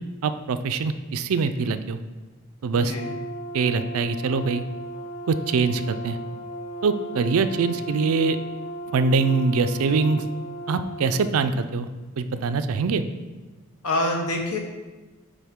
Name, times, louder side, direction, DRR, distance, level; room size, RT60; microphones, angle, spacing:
voice 1, 0.2-2.0 2.6-2.9 3.5-4.6 5.3-6.2 6.8-8.4 8.9-10.2 10.7-11.9 12.2-13.0, right 4 dB, 70° right, 11 dB, 0.4 m, -23 dB
voice 2, 2.8-3.1 13.8-14.6, left 1 dB, 80° left, 2 dB, 1.1 m, -26 dB
Brass instrument, 2.9-11.3, right 1 dB, 35° left, 0.4 m, -36 dB
9.1 x 3.6 x 3.6 m, 1.2 s
head